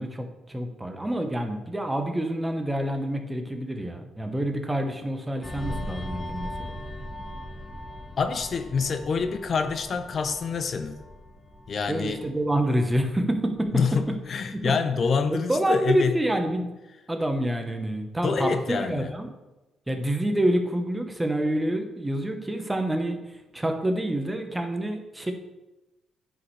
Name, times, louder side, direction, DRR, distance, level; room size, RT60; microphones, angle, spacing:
voice 1, 0.0-6.7 11.9-13.8 15.3-16.7 17.1-19.3 19.9-25.3, right 1 dB, 15° right, 5 dB, 1.0 m, -27 dB
sound 1, 5.4-14.5 14.8-15.1, left 1 dB, 30° left, 1.3 m, -39 dB
voice 2, 8.2-11.0 11.7-12.2 13.7-16.1 18.2-19.1, left 5 dB, 50° left, 9 dB, 0.6 m, -26 dB
9.2 x 5.2 x 3.2 m, 1.0 s
cardioid pair, 90°, 0 cm